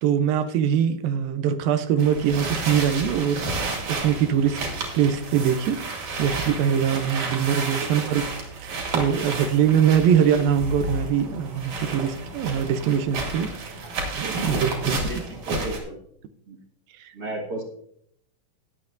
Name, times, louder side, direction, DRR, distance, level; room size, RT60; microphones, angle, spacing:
voice 1, 0.0-4.6 4.9-5.8 6.2-8.2 8.6-13.9 14.2-14.7 17.0-17.1, right 8 dB, 80° right, 9 dB, 2.5 m, -23 dB
sound 1, 2.0-15.8, right 3 dB, 55° right, 3.5 m, -31 dB
voice 2, 7.8-8.2 13.8-13.9 14.4-14.8 15.1-16.0 16.5-16.6 17.1-17.6, right 1 dB, 40° right, 0 dB, 1.5 m, -35 dB
19.5 x 8.1 x 2.6 m, 0.69 s
omnidirectional pair, 4.2 m